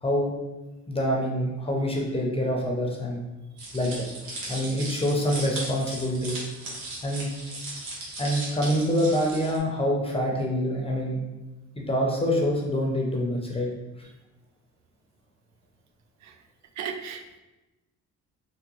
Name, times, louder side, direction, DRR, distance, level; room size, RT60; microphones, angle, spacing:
voice 1, 0.0-0.3 0.9-3.3 3.7-4.1 4.5-6.4 7.0-7.3 8.2-11.2 11.8-13.7, equal, 20° left, -2 dB, 0.6 m, -26 dB
sound 1, 3.6-9.6, right 2 dB, 85° right, 1.1 m, -37 dB
voice 2, 16.8-17.4, right 7 dB, 65° right, 5 dB, 0.5 m, -35 dB
3.6 x 2.2 x 3.0 m, 1.1 s
cardioid pair, 90°, 30 cm